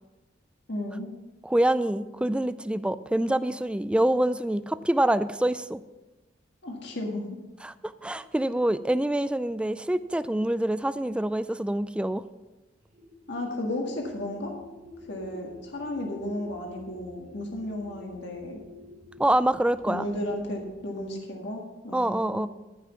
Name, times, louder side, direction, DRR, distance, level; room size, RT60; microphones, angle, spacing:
voice 1, 0.7-1.2 6.6-7.2 13.3-14.5 15.1-18.6 19.9-22.5, left 1 dB, 65° left, 0 dB, 1.7 m, -34 dB
voice 2, 1.4-5.8 7.6-12.2 19.2-20.1 21.9-22.5, right 1 dB, 5° right, 14 dB, 0.3 m, -26 dB
sound 1, 12.8-21.1, left 2 dB, 45° right, 1.4 m, -49 dB
13.5 x 5.9 x 5.8 m, 1.1 s
head